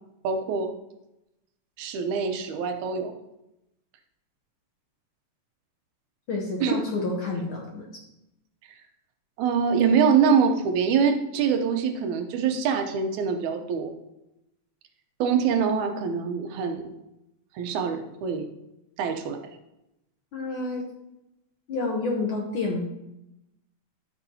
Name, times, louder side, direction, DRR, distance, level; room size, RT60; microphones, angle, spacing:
voice 1, 0.2-0.7 1.8-3.1 6.6-6.8 9.4-13.9 15.2-16.9 17.6-18.5 19.0-19.4, right 6 dB, 85° right, 5 dB, 2.3 m, -24 dB
voice 2, 6.3-7.9 20.3-20.9 21.7-22.8, left 3 dB, 65° left, 0 dB, 1.4 m, -29 dB
12.5 x 6.3 x 2.8 m, 0.89 s
omnidirectional pair, 3.3 m